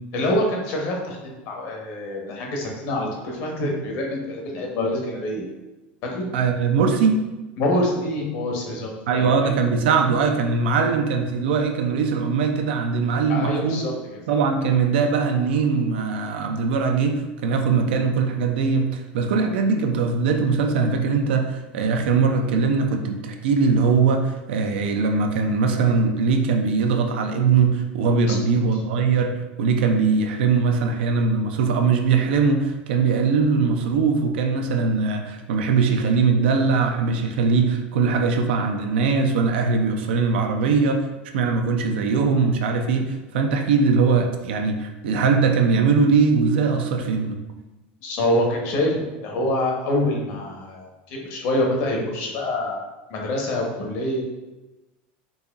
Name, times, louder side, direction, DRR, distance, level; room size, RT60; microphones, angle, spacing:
voice 1, 0.1-5.5 6.1-6.4 7.6-9.5 13.3-13.9 28.3-28.6 48.0-52.8 53.1-54.2, left 1 dB, 60° left, 0 dB, 0.9 m, -26 dB
voice 2, 6.3-7.3 9.1-13.8 14.3-41.1 41.3-47.4, right 5 dB, 80° right, 5 dB, 0.5 m, -21 dB
4.0 x 2.9 x 2.4 m, 1.1 s
supercardioid pair, 110°, 6 cm